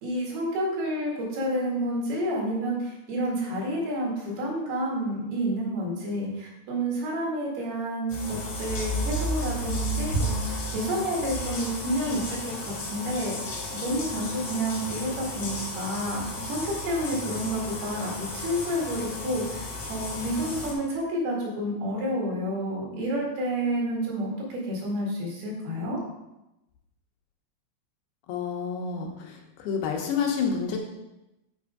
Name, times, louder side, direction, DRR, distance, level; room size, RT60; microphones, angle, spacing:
voice 1, 0.0-12.5 12.9-13.3 13.7-26.0, equal, 75° right, -3 dB, 3.9 m, -29 dB
sound 1, 8.1-20.7, equal, 55° left, 1.5 m, -33 dB
voice 2, 28.3-29.3 29.6-30.8, left 6 dB, 80° left, 1 dB, 3.0 m, -28 dB
8.7 x 4.4 x 5.0 m, 0.94 s
omnidirectional pair, 4.6 m